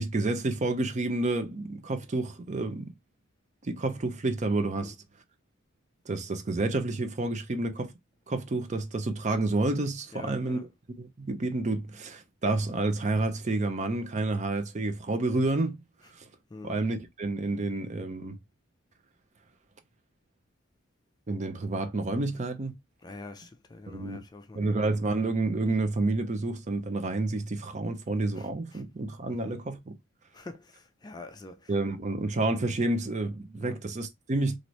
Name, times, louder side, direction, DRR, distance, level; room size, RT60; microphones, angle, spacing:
voice 1, 0.0-2.9 3.6-5.0 6.1-7.9 8.3-10.6 11.0-15.8 16.1-16.3 16.6-18.4 21.3-22.8 23.9-24.2 24.5-29.9 31.7-34.6, right 2 dB, 35° right, 0.5 m, -29 dB
voice 2, 10.1-10.7 16.0-16.1 16.5-16.8 23.0-24.9 28.4-28.8 29.3-29.6 30.3-31.8 33.6-33.8, left 2 dB, 20° left, 0.3 m, -46 dB
2.8 x 2.5 x 3.0 m
head